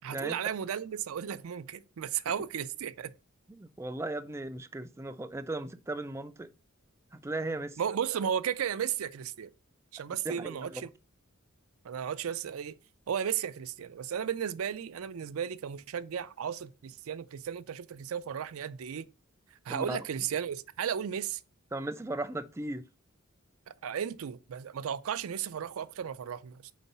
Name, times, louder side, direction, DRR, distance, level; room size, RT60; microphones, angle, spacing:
voice 1, 0.0-3.1 7.8-9.5 9.9-10.9 11.8-12.8 13.1-19.1 19.7-21.4 23.7-26.7, right 8 dB, 75° right, 0.4 m, -34 dB
voice 2, 3.5-6.5 7.2-7.8 10.3-10.8 19.7-20.0 21.7-22.8, right 2 dB, 10° right, 0.4 m, -36 dB
4.5 x 4.0 x 5.4 m
head